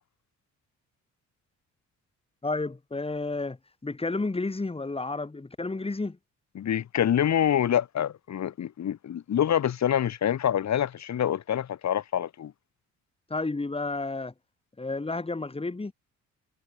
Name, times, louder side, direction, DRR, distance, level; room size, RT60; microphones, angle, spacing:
voice 1, 2.4-3.6 3.8-6.2 13.3-14.3 14.8-15.9, left 3 dB, 20° left, 6.4 m, -31 dB
voice 2, 6.5-12.5, left 10 dB, 65° left, 7.9 m, -26 dB
cardioid pair, 90°, 30 cm